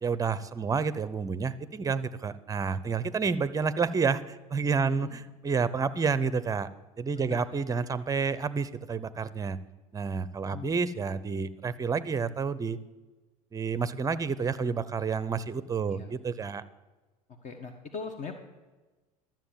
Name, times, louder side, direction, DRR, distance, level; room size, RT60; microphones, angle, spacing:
voice 1, 0.0-6.7 7.0-9.6 9.9-12.8 13.5-16.6, right 5 dB, 20° right, 15 dB, 0.6 m, -29 dB
voice 2, 4.8-5.2 7.3-7.4 10.5-10.7 15.9-16.1 17.4-18.4, left 5 dB, 40° left, 6 dB, 1.3 m, -40 dB
12.5 x 7.5 x 7.4 m, 1.2 s
hypercardioid pair, 75°, 19 cm